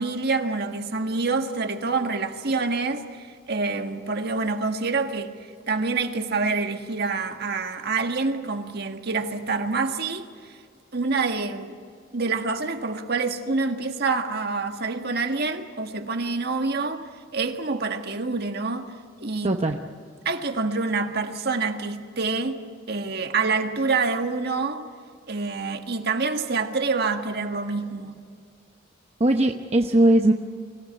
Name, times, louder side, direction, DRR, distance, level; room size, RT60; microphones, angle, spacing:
voice 1, 0.0-10.6 10.9-11.8 12.1-19.6 20.2-22.6 22.9-24.9 25.3-28.1, right 4 dB, 55° right, 1.7 m, -27 dB
voice 2, 19.4-19.8 29.2-30.3, right 1 dB, 30° right, 0.9 m, -19 dB
24.5 x 17.0 x 9.7 m
head